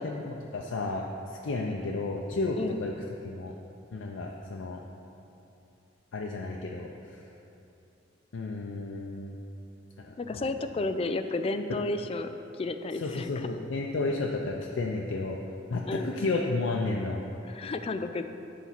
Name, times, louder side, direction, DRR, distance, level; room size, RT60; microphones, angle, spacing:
voice 1, 0.0-2.9 3.2-3.5 3.9-4.8 6.1-7.2 8.3-9.3 10.0-10.4 13.0-15.4 15.7-17.2, left 3 dB, 90° left, -1 dB, 0.5 m, -32 dB
voice 2, 10.2-13.5 15.9-16.1 17.4-18.2, left 2 dB, 30° left, 8 dB, 0.3 m, -32 dB
8.2 x 4.2 x 5.8 m, 2.8 s
head